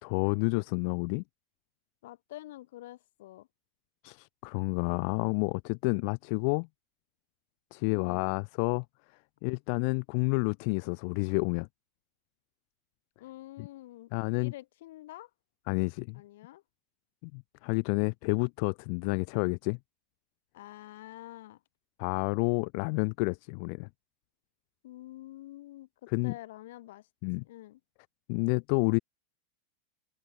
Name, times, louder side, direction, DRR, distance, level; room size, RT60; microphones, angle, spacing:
voice 1, 0.0-1.2 4.0-6.7 7.7-8.8 9.4-11.7 13.6-13.7 14.1-14.5 15.7-16.2 17.2-19.8 22.0-23.9 26.1-26.3 27.2-27.4 28.3-29.0, left 39 dB, 50° left, 0.4 m, -29 dB
voice 2, 2.0-3.5 7.9-8.2 13.2-15.3 16.1-16.6 20.5-21.6 24.8-27.1 27.4-27.8, left 16 dB, 70° left, 5.8 m, -47 dB
supercardioid pair, 155°, 0 cm